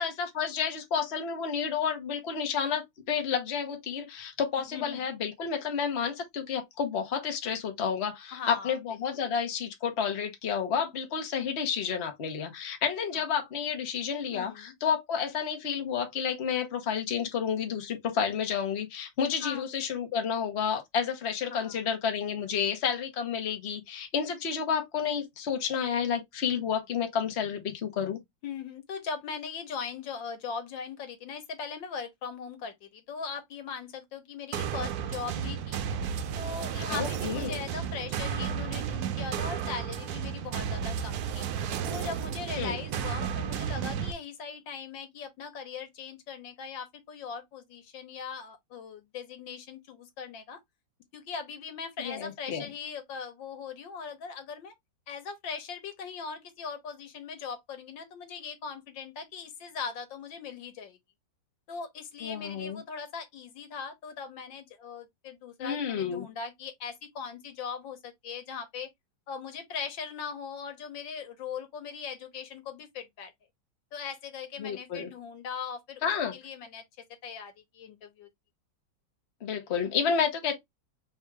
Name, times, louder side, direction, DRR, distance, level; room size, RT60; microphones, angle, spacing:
voice 1, 0.0-28.2 36.9-37.6 42.6-42.8 52.0-52.7 62.2-62.8 65.6-66.3 74.6-75.1 76.0-76.3 79.4-80.6, left 7 dB, 40° left, 1.1 m, -30 dB
voice 2, 8.3-8.8 9.2-9.3 13.1-13.2 14.3-14.7 19.4-19.6 21.5-21.8 28.4-35.8 36.4-41.5 41.9-50.6 51.1-54.7 55.1-61.0 61.7-68.9 69.3-73.3 73.9-76.0 76.3-78.3, left 6 dB, 80° left, 1.7 m, -40 dB
sound 1, 34.5-44.1, right 8 dB, 70° right, 1.0 m, -33 dB
3.5 x 2.6 x 4.6 m
omnidirectional pair, 2.0 m